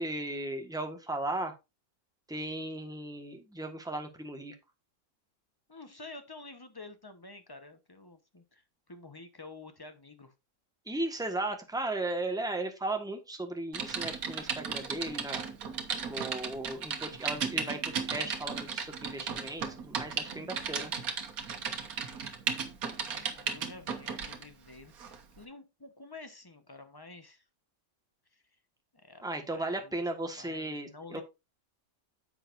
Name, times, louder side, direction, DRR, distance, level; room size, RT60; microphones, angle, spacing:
voice 1, 0.0-1.5 2.3-4.5 10.9-15.4 16.1-20.9 29.2-31.2, right 2 dB, 5° right, 1.3 m, -36 dB
voice 2, 5.7-10.3 23.0-27.4 28.3-28.4 29.0-30.0 30.3-31.2, left 3 dB, 20° left, 0.9 m, -50 dB
Typing, 13.7-24.4 25.0-25.2, right 6 dB, 75° right, 1.7 m, -35 dB
9.9 x 7.4 x 2.6 m
omnidirectional pair, 1.6 m